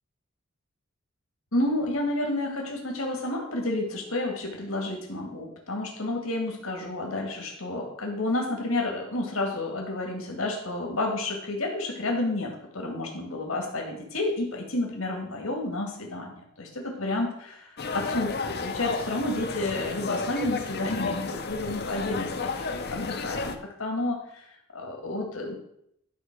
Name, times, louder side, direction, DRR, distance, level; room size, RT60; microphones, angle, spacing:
voice 1, 1.5-24.5 24.7-25.5, left 2 dB, 80° left, 1 dB, 2.2 m, -30 dB
sound 1, 17.8-23.6, left 4 dB, 50° left, 0.8 m, -32 dB
11.5 x 4.2 x 6.1 m, 0.75 s
head